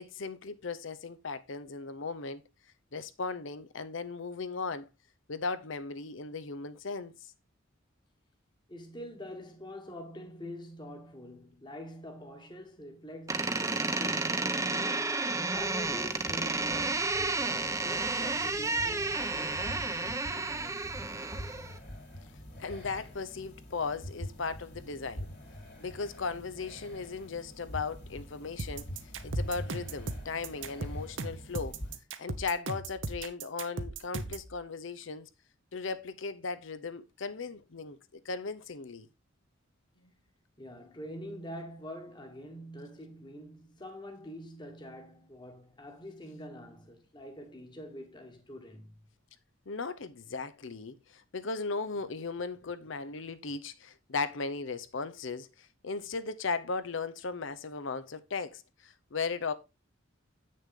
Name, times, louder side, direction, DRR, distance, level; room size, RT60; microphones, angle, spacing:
voice 1, 0.0-2.4 2.9-4.9 5.3-7.3 22.6-25.3 25.8-31.8 32.2-35.3 35.7-39.1 49.7-59.5, left 4 dB, 70° left, 0.7 m, -37 dB
voice 2, 8.7-15.2 15.5-20.9 40.6-49.0, equal, 25° left, 1.5 m, -45 dB
Door, 13.3-21.8, right 3 dB, 15° right, 0.8 m, -31 dB
sound 1, 15.5-32.0, equal, 55° left, 3.1 m, -45 dB
sound 2, 28.6-34.5, right 3 dB, 65° right, 0.9 m, -37 dB
8.3 x 6.4 x 3.7 m
head